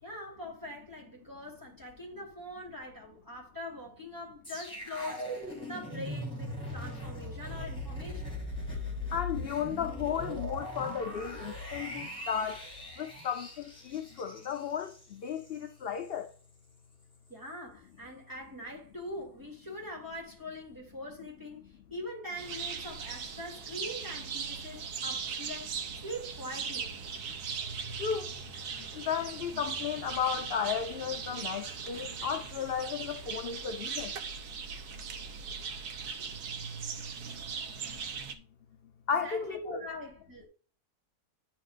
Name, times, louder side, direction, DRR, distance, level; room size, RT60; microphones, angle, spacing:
voice 1, 0.0-8.4 17.3-25.7 26.0-26.9 39.2-40.5, left 1 dB, 10° right, 2.5 m, -43 dB
sound 1, 4.4-15.6 16.0-16.1, left 1 dB, 5° left, 2.8 m, -40 dB
voice 2, 9.1-12.6 13.0-13.5 13.8-16.3 28.0-28.3 28.8-34.1 39.1-39.8, left 7 dB, 60° left, 0.6 m, -34 dB
sound 2, 22.4-38.3, right 6 dB, 80° right, 1.4 m, -39 dB
10.0 x 4.4 x 2.5 m
omnidirectional pair, 1.6 m